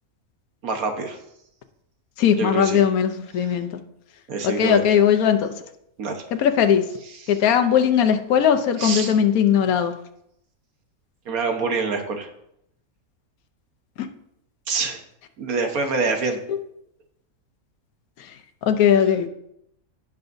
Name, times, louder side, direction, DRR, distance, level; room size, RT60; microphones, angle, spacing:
voice 1, 0.6-1.2 2.4-2.8 4.3-4.9 6.0-6.2 8.8-9.1 11.3-12.3 14.7-15.0 15.4-16.4, right 4 dB, 80° right, 5 dB, 1.6 m, -25 dB
voice 2, 2.2-3.8 4.4-5.5 6.3-6.8 7.3-9.9 14.0-14.1 16.5-16.6 18.7-19.3, left 8 dB, 80° left, 7 dB, 1.2 m, -19 dB
16.0 x 5.6 x 2.6 m, 0.76 s
omnidirectional pair, 1.5 m